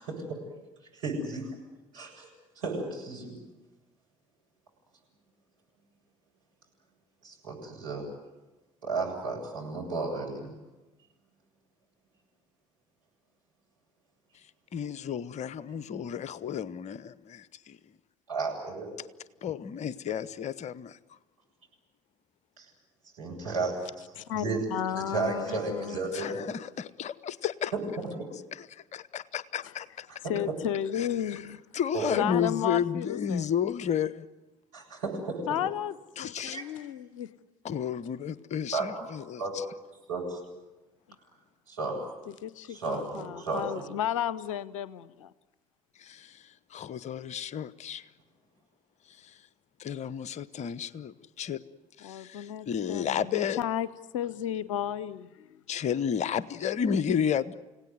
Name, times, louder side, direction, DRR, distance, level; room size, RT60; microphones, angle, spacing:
voice 1, 1.0-1.5 1.9-2.3 2.6-3.4 7.2-8.0 8.8-10.5 18.3-18.9 22.6-22.7 23.2-24.0 24.3-24.6 24.9-26.4 27.7-28.1 30.2-30.3 31.9-32.3 34.7-35.4 36.5-36.6 38.7-38.9 39.4-39.5 40.1-40.4 41.7-42.1 42.7-43.8, right 3 dB, 75° right, -3 dB, 7.7 m, -33 dB
voice 2, 14.7-17.8 19.4-21.0 26.1-27.7 28.5-30.2 30.9-31.4 31.7-34.3 36.2-36.6 37.6-39.6 46.0-48.1 49.1-49.4 49.8-51.6 52.0-53.6 55.7-57.5, left 8 dB, 40° left, 18 dB, 0.9 m, -32 dB
voice 3, 24.2-26.0 30.3-31.6 32.1-33.5 35.5-37.3 42.4-45.1 52.0-53.9 54.1-55.6, left 10 dB, 70° left, 18 dB, 0.8 m, -33 dB
29.5 x 17.5 x 9.5 m, 1.1 s
figure-of-eight pair, 55°, 17 cm